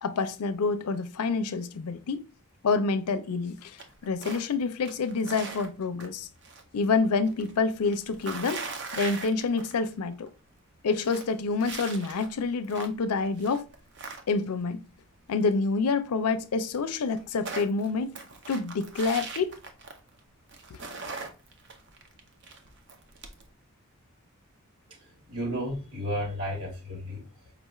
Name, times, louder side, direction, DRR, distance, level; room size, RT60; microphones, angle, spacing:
voice 1, 0.0-2.2 2.6-3.8 4.0-6.3 6.7-8.6 8.9-10.3 10.8-13.7 14.3-14.8 15.3-18.2 18.5-19.6 20.7-20.8, left 4 dB, 85° left, 0.5 m, -27 dB
sound 1, 3.8-4.5 4.8-6.7 6.9-9.9 10.3-10.4 10.7-13.0 13.4-14.6 16.2-16.3 16.5-16.6 16.9-20.2 20.5-23.5, right 4 dB, 50° right, 0.6 m, -40 dB
voice 2, 24.9-27.5, equal, 75° right, 2.3 m, -34 dB
4.9 x 2.3 x 3.0 m
head